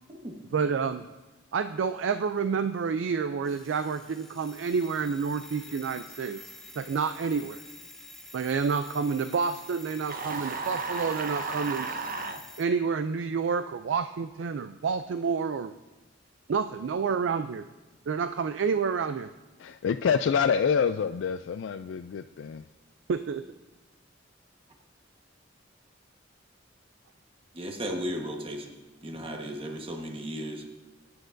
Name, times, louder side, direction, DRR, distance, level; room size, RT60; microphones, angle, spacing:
voice 1, 0.5-1.1 1.5-6.4 6.8-7.6 8.3-11.9 12.6-15.7 16.5-17.6 18.1-19.3 23.1-23.4, right 5 dB, 70° right, 10 dB, 0.4 m, -29 dB
Alarm, 3.4-12.7, left 2 dB, 5° left, 0.8 m, -48 dB
sound 1, 10.1-12.4, right 4 dB, 45° right, 0.8 m, -33 dB
voice 2, 19.6-22.6, left 6 dB, 70° left, 9 dB, 0.3 m, -27 dB
voice 3, 27.5-28.7 29.0-30.7, equal, 30° right, 2 dB, 1.3 m, -35 dB
21.0 x 9.7 x 2.6 m, 1.1 s
head